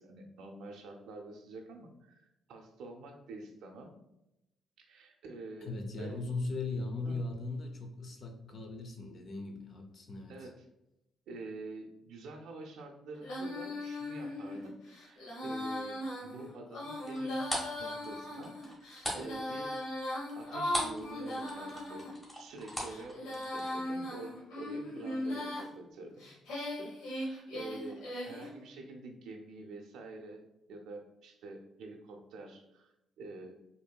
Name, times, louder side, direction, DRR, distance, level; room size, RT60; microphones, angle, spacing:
voice 1, 0.0-3.9 4.9-6.2 7.0-7.2 10.3-10.6 11.3-18.9 19.2-19.7 20.3-26.3 26.6-30.4 30.7-33.6, right 2 dB, 80° right, 2 dB, 0.4 m, -47 dB
voice 2, 5.6-10.5, left 3 dB, 50° left, 4 dB, 0.5 m, -38 dB
Female singing, 13.2-22.1 22.7-25.7 26.2-28.5, left 1 dB, 85° left, 0.9 m, -38 dB
sound 1, 17.1-21.1 21.3-23.7, equal, 15° left, 1.3 m, -39 dB
4.4 x 2.6 x 2.2 m, 0.88 s
cardioid pair, 90°, 0 cm